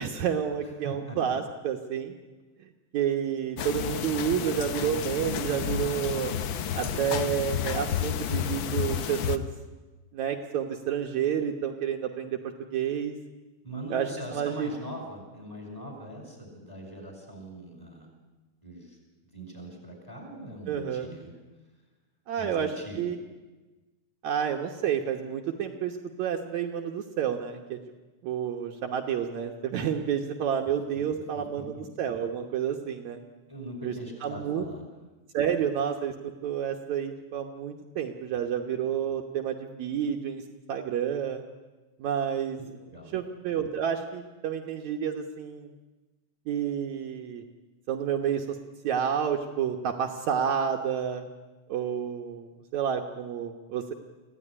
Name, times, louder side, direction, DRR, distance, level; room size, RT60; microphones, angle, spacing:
voice 1, 0.0-2.1 2.9-6.3 6.8-9.5 10.1-13.2 13.9-14.7 20.7-21.1 22.3-23.2 24.2-27.8 28.2-33.2 33.8-33.9 34.2-34.7 35.3-40.4 40.7-41.4 42.0-42.6 43.1-45.7 46.5-47.4 47.9-48.6 48.8-51.3 51.7-53.9, right 8 dB, 70° right, 3 dB, 2.4 m, -30 dB
voice 2, 0.6-1.4 13.6-18.1 18.6-19.0 19.2-21.3 22.3-23.1 31.3-31.8 33.5-34.9 42.6-43.1, right 1 dB, 5° left, 2 dB, 6.2 m, -41 dB
sound 1, 3.6-9.4, left 9 dB, 80° left, 1.1 m, -31 dB
25.5 x 16.0 x 9.9 m, 1.2 s
omnidirectional pair, 3.5 m